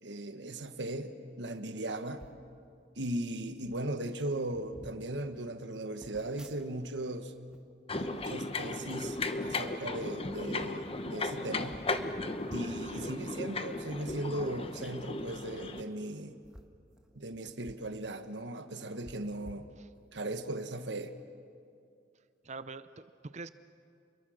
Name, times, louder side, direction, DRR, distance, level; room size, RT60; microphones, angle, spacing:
voice 1, 0.0-2.2 3.0-7.3 7.9-11.8 12.5-16.4 17.1-19.7 20.1-21.1, right 1 dB, 80° right, 1.4 m, -38 dB
sound 1, 2.1-2.4 3.3-3.4 3.6-3.9 4.4-5.0 6.0-7.0 7.3-8.7 9.2-9.6 10.3-10.7 11.2-11.3 11.6-11.7 12.5-12.9 14.0-14.2 15.6-15.8 16.4-17.9 18.2-18.3 19.0-20.2 20.7-20.9, equal, 5° right, 1.4 m, -53 dB
sound 2, 7.9-15.8, left 2 dB, 35° left, 1.1 m, -36 dB
voice 2, 22.4-23.5, right 3 dB, 40° right, 0.6 m, -44 dB
29.0 x 22.5 x 6.5 m
head